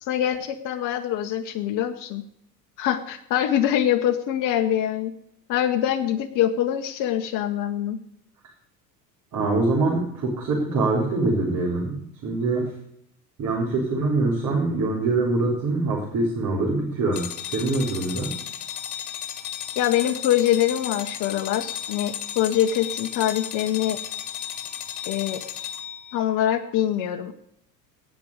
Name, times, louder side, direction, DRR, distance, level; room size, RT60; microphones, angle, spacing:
voice 1, 0.0-2.2 2.8-5.1 5.5-8.0 19.8-24.0 25.1-25.4 26.1-27.3, left 11 dB, 40° left, 7 dB, 1.0 m, -24 dB
voice 2, 9.3-12.6 13.4-18.3, right 3 dB, 40° right, -3 dB, 4.0 m, -24 dB
sound 1, 17.1-26.2, left 10 dB, 60° left, 1.6 m, -34 dB
18.0 x 6.2 x 6.6 m, 0.72 s
figure-of-eight pair, 75°, 49 cm